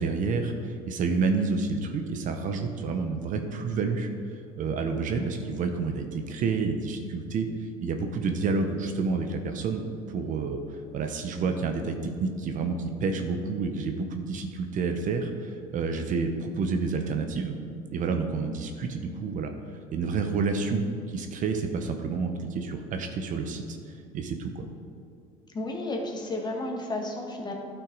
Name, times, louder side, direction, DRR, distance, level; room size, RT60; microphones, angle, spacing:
voice 1, 0.0-4.1 4.6-9.8 10.1-10.6 10.9-17.6 17.9-19.5 19.9-20.8 21.1-23.8 24.1-24.7, right 4 dB, 50° right, 5 dB, 0.9 m, -29 dB
voice 2, 25.5-27.5, left 2 dB, 25° left, 1 dB, 1.7 m, -32 dB
12.0 x 6.0 x 4.0 m, 2.5 s
supercardioid pair, 90°, 17 cm